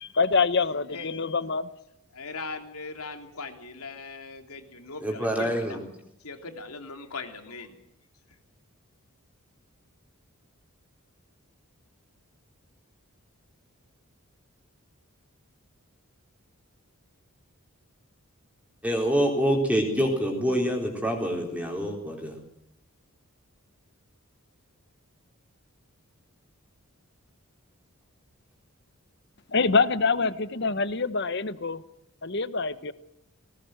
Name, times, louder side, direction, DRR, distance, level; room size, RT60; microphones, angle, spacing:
voice 1, 0.0-1.7 29.5-31.8 32.2-32.9, left 4 dB, 50° left, 14 dB, 1.0 m, -25 dB
voice 2, 2.1-5.8 6.2-7.7, left 3 dB, 90° left, 6 dB, 3.1 m, -39 dB
voice 3, 5.0-5.8 18.8-22.3, equal, 5° right, 1 dB, 3.9 m, -26 dB
19.0 x 18.5 x 7.9 m, 0.81 s
head